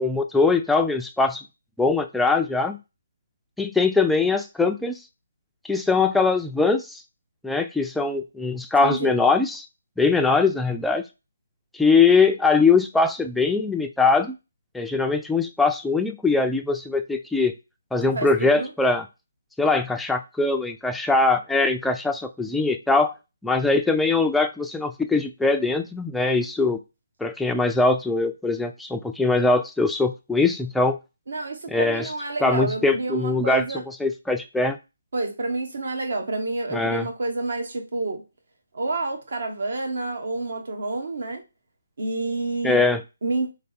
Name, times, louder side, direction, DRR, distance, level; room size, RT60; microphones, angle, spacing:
voice 1, 0.0-1.4 1.8-2.8 3.6-5.0 5.7-7.0 7.4-9.7 10.0-11.0 11.7-14.3 14.7-17.5 17.9-19.0 19.6-23.1 23.4-26.8 27.2-31.0 31.7-32.1 32.4-33.6 34.0-34.8 36.7-37.1 42.6-43.0, left 3 dB, 5° left, 0.3 m, -21 dB
voice 2, 8.8-9.2 18.0-18.7 31.3-33.8 35.1-38.2 38.7-41.4 42.0-42.8 43.2-43.5, right 2 dB, 70° right, 1.2 m, -29 dB
3.4 x 3.1 x 4.1 m
hypercardioid pair, 155°, 0 cm